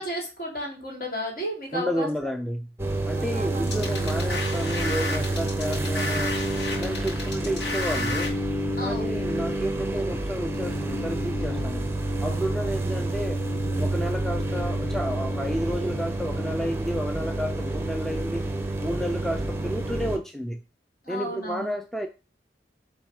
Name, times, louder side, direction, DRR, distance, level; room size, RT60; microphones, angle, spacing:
voice 1, 0.0-2.1 3.0-3.8 8.8-9.1 21.0-21.7, equal, 50° left, -1 dB, 3.0 m, -33 dB
voice 2, 1.7-2.7 3.1-6.4 6.8-8.3 8.8-11.9 12.2-13.4 13.8-18.5 18.8-20.6 21.1-22.1, equal, ahead, 5 dB, 0.4 m, -31 dB
sound 1, 2.8-20.2, right 1 dB, 15° right, 0.7 m, -28 dB
sound 2, 3.6-8.3, left 3 dB, 70° left, 1.9 m, -32 dB
7.7 x 3.5 x 4.9 m, 0.31 s
head